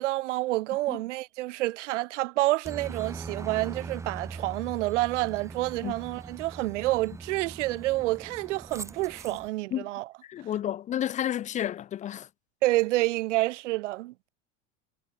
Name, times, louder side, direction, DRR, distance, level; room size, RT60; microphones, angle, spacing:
voice 1, 0.0-10.1 12.6-14.3, right 18 dB, 80° right, 2.3 m, -28 dB
Aircraft, 2.7-9.5, right 4 dB, 10° right, 1.7 m, -41 dB
voice 2, 10.3-12.3, left 11 dB, 20° left, 1.3 m, -31 dB
supercardioid pair, 180°, 36 cm